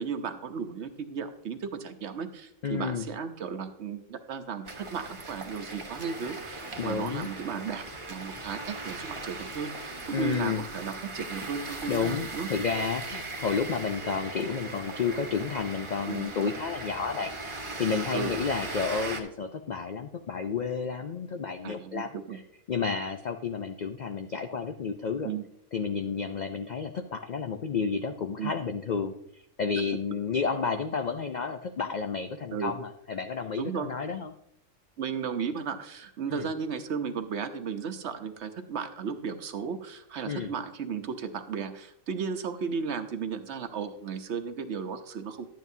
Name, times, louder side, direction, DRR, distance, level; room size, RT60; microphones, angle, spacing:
voice 1, 0.0-12.5 16.1-16.3 18.1-18.3 21.6-22.4 25.2-25.4 28.4-28.5 32.5-32.7 33.6-33.9 35.0-45.5, right 6 dB, 60° right, 8 dB, 1.0 m, -35 dB
voice 2, 2.6-3.0 6.8-7.3 10.1-10.6 11.9-22.4 22.7-25.3 25.7-34.3 36.3-36.5 40.2-40.5, left 5 dB, 70° left, 7 dB, 0.4 m, -31 dB
sound 1, 4.6-19.2, right 2 dB, 25° right, 1.0 m, -39 dB
12.0 x 9.3 x 2.7 m, 0.75 s
omnidirectional pair, 1.4 m